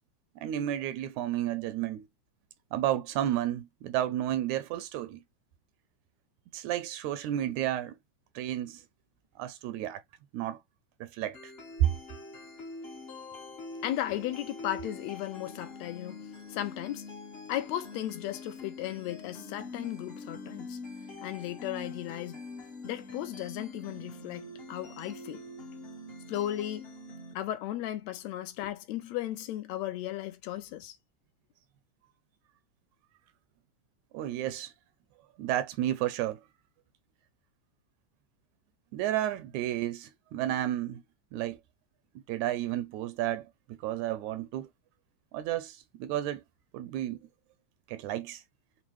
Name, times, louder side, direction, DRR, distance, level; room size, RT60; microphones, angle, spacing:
voice 1, 0.4-2.1 2.7-5.2 6.5-8.0 8.4-8.8 9.4-10.0 10.3-10.6 11.0-11.4 11.8-11.9 34.1-34.7 35.4-36.4 38.9-41.0 41.3-41.6 42.2-44.7 45.3-46.4 46.7-47.2 47.9-48.4, right 12 dB, 80° right, 1.9 m, -31 dB
sound 1, 11.3-27.3, left 3 dB, 60° left, 0.6 m, -44 dB
voice 2, 13.8-17.1 17.5-20.8 21.2-22.4 22.8-25.4 26.3-26.9 27.4-31.0, left 13 dB, 75° left, 1.7 m, -35 dB
4.8 x 2.1 x 3.0 m
omnidirectional pair, 3.4 m